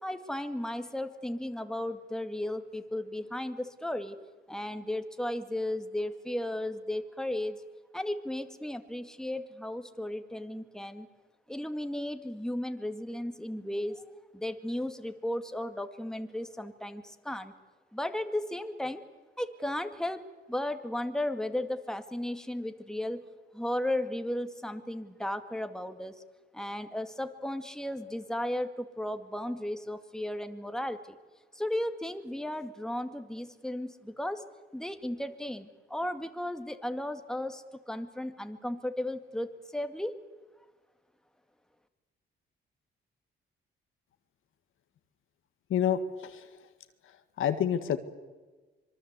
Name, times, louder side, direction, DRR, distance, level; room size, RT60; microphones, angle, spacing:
voice 1, 0.0-4.2 4.5-7.6 7.9-11.1 11.5-14.0 14.3-17.5 17.9-19.0 19.4-23.2 23.5-26.2 26.5-31.2 31.5-34.4 34.7-40.1, left 1 dB, 5° left, 8 dB, 2.0 m, -35 dB
voice 2, 45.7-46.3 47.4-48.0, left 9 dB, 75° left, 9 dB, 1.9 m, -27 dB
25.5 x 23.0 x 8.2 m, 1.3 s
cardioid pair, 95°, 21 cm